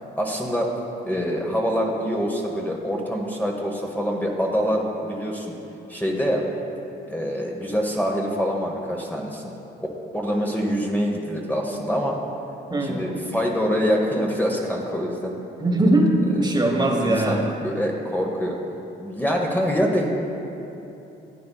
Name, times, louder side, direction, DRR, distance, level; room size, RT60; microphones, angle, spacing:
voice 1, 0.2-0.7 1.0-5.6 5.9-6.4 7.1-9.5 10.1-12.2 12.8-15.4 16.5-16.6 17.0-18.6 19.0-20.1, equal, 10° left, -1 dB, 1.0 m, -25 dB
voice 2, 12.7-13.1 15.6-17.4, right 1 dB, 20° right, 0 dB, 1.2 m, -20 dB
13.5 x 8.6 x 2.3 m, 2.9 s
cardioid pair, 90°, 20 cm